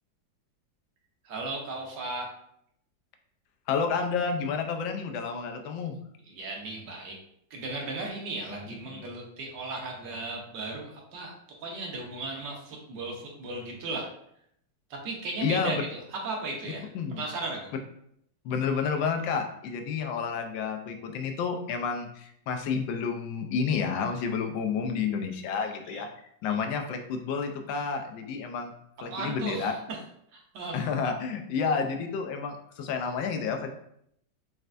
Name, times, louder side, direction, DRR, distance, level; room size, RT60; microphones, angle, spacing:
voice 1, 1.2-2.3 6.3-7.2 7.5-14.1 14.9-16.9 17.2-17.7 25.9-26.0 29.1-30.0 30.3-30.8, right 3 dB, 70° right, 0 dB, 1.5 m, -36 dB
voice 2, 3.7-6.0 15.4-15.7 16.9-17.2 18.4-26.1 26.4-28.7 29.0-29.7 30.7-33.7, left 5 dB, 80° left, 4 dB, 1.3 m, -30 dB
4.3 x 3.2 x 2.5 m, 0.71 s
omnidirectional pair, 2.0 m